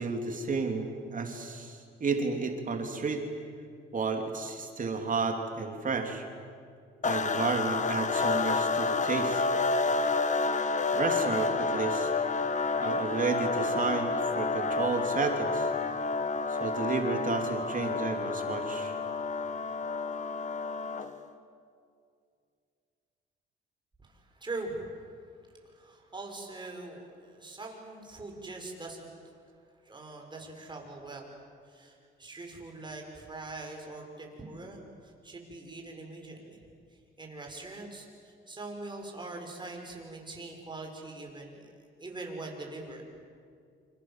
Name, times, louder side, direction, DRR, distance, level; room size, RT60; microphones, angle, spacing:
voice 1, 0.0-3.2 3.9-6.2 7.0-9.4 10.9-12.1 12.8-15.7 16.5-18.9, right 4 dB, 40° right, 4 dB, 3.3 m, -32 dB
sound 1, 7.0-21.2, left 4 dB, 40° left, 1.7 m, -30 dB
voice 2, 24.0-24.9 25.7-29.1 29.8-31.3 31.7-36.6 37.2-41.7 42.0-43.0, right 2 dB, 25° right, 1 dB, 6.8 m, -42 dB
28.5 x 27.0 x 7.7 m, 2.3 s
cardioid pair, 90°, 20 cm